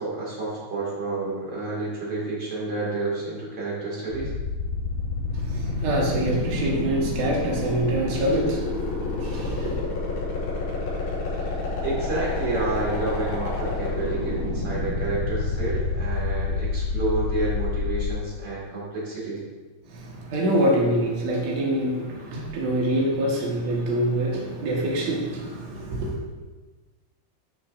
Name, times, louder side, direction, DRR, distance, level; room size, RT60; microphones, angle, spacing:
voice 1, 0.0-4.3 11.8-19.4, right 3 dB, 45° right, -5 dB, 1.5 m, -29 dB
sound 1, 4.1-18.1, left 4 dB, 60° left, 4.9 m, -27 dB
voice 2, 5.3-9.8 19.9-26.2, right 1 dB, 75° right, -3 dB, 1.6 m, -25 dB
12.5 x 6.5 x 2.6 m, 1.3 s
omnidirectional pair, 5.5 m